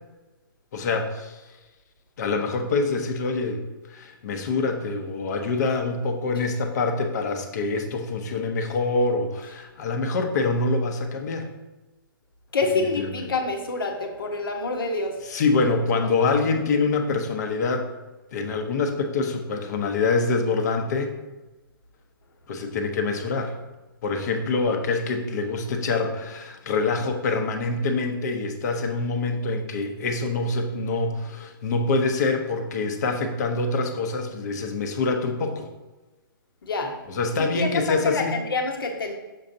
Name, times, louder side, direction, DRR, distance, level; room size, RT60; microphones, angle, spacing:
voice 1, 0.7-1.4 2.2-3.6 3.9-11.5 13.1-13.3 15.2-17.9 18.3-21.1 22.5-23.5 24.0-35.7 37.1-38.3, left 3 dB, 50° left, 5 dB, 0.9 m, -25 dB
voice 2, 12.5-15.2 36.6-36.9 37.4-39.1, left 3 dB, 70° left, 4 dB, 1.1 m, -27 dB
6.4 x 5.5 x 2.7 m, 1.2 s
hypercardioid pair, 145°, 12 cm